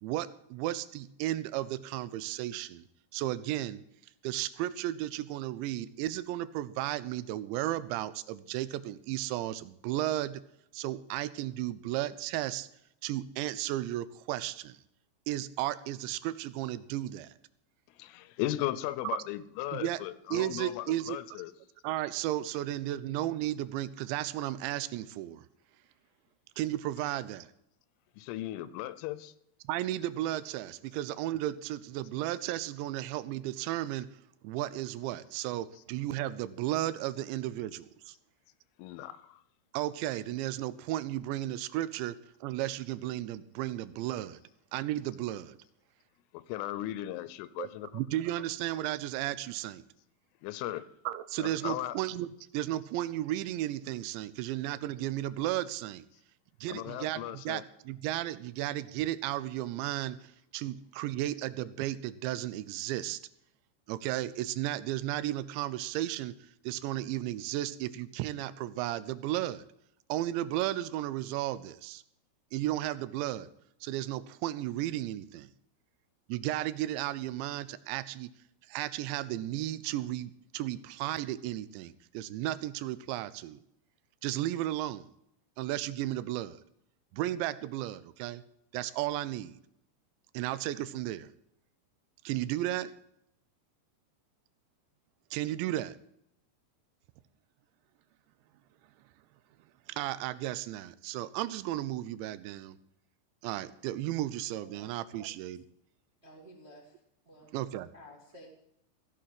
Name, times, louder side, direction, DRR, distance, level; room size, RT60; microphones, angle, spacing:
voice 1, 0.0-2.9 3.1-3.8 4.2-10.4 10.7-12.7 13.0-14.8 15.3-17.3 19.7-20.0 20.3-21.2 21.8-25.5 26.6-27.5 29.6-34.1 34.4-38.1 39.7-44.4 44.7-45.6 47.6-47.7 47.9-49.8 51.1-52.3 52.5-56.0 56.6-63.2 63.9-69.7 70.1-72.0 72.5-73.5 73.8-75.5 76.3-78.3 78.7-83.6 84.2-85.1 85.6-86.6 87.1-88.4 88.7-89.6 90.3-91.3 92.2-92.9 95.3-96.0 99.9-102.8 103.4-105.6 107.5-107.9, right 14 dB, 80° right, 15 dB, 2.8 m, -34 dB
voice 2, 18.0-21.5 28.2-29.3 38.8-39.4 46.3-47.9 50.4-50.9 51.4-51.9 56.7-57.6, left 14 dB, 90° left, 16 dB, 3.3 m, -37 dB
voice 3, 104.6-105.3 106.2-106.9 107.2-107.5 107.9-108.5, equal, 35° right, 0 dB, 1.0 m, -53 dB
15.5 x 6.5 x 7.6 m, 0.76 s
omnidirectional pair, 5.6 m